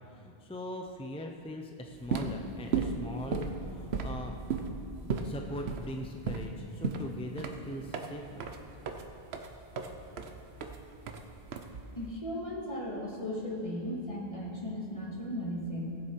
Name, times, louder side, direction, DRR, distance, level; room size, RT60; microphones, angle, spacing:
voice 1, 0.1-4.3 5.2-8.5, equal, 10° left, 3 dB, 0.3 m, -41 dB
sound 1, 1.9-12.1, right 5 dB, 75° right, 1.0 m, -36 dB
voice 2, 12.0-16.0, left 1 dB, 30° left, -3 dB, 1.8 m, -36 dB
17.5 x 7.5 x 4.5 m, 2.6 s
omnidirectional pair, 1.1 m